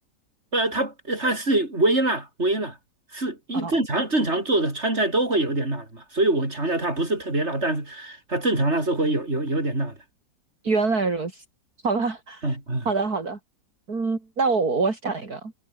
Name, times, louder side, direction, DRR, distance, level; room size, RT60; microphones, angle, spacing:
voice 1, 0.5-2.8 3.1-10.0 12.4-12.9, right 2 dB, 35° right, 6.6 m, -24 dB
voice 2, 10.6-11.4 11.8-12.6 12.9-13.4 13.9-15.5, right 4 dB, 55° right, 4.1 m, -25 dB
omnidirectional pair, 1.9 m